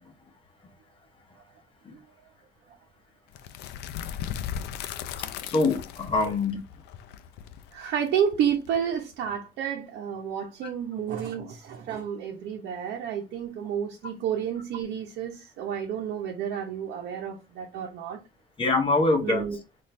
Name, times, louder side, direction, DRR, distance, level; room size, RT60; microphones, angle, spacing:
sound 1, 3.3-9.1, left 9 dB, 80° left, 0.4 m, -37 dB
voice 1, 5.4-6.6 18.6-19.4, left 3 dB, 30° left, 0.9 m, -24 dB
voice 2, 7.7-18.2 19.2-19.6, right 8 dB, 75° right, 0.8 m, -30 dB
4.1 x 2.6 x 3.1 m
cardioid pair, 110°, 17 cm